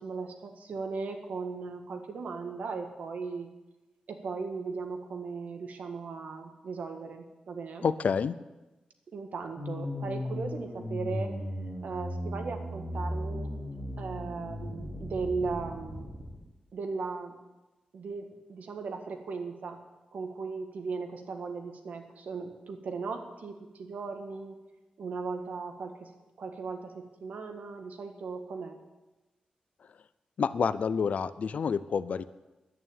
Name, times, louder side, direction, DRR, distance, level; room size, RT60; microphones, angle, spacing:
voice 1, 0.0-3.5 4.1-7.9 9.1-11.4 11.8-13.5 14.0-16.1 16.7-17.4 17.9-19.8 20.1-24.5 25.0-26.1 26.4-28.8, right 4 dB, 75° right, 5 dB, 1.8 m, -37 dB
voice 2, 7.8-8.4 30.4-32.2, left 6 dB, 65° left, 15 dB, 0.6 m, -28 dB
sound 1, 9.6-16.3, left 1 dB, 25° right, 4.6 m, -36 dB
11.0 x 9.5 x 9.0 m, 1.1 s
wide cardioid pair, 135°, 3 cm